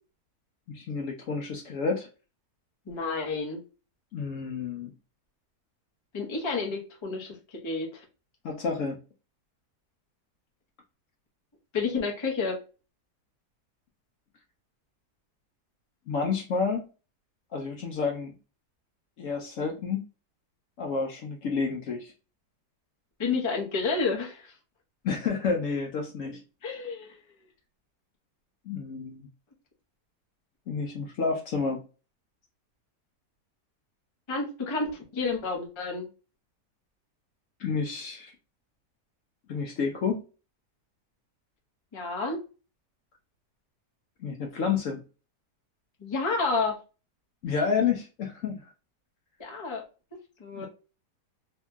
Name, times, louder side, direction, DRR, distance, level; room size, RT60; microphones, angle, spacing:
voice 1, 0.7-2.1 4.1-4.9 8.4-9.0 16.1-16.8 17.5-18.3 19.2-20.0 20.8-22.1 25.0-26.4 28.7-29.3 30.7-31.8 37.6-38.3 39.5-40.2 44.2-45.0 47.4-48.6 50.6-50.7, left 5 dB, 70° left, 2 dB, 0.8 m, -30 dB
voice 2, 2.9-3.6 6.1-8.0 11.7-12.6 23.2-24.5 26.6-27.2 34.3-36.1 41.9-42.4 46.0-46.8 49.4-49.8 50.4-50.7, left 4 dB, 40° left, 0 dB, 0.4 m, -30 dB
2.9 x 2.6 x 2.2 m, 0.34 s
omnidirectional pair, 1.7 m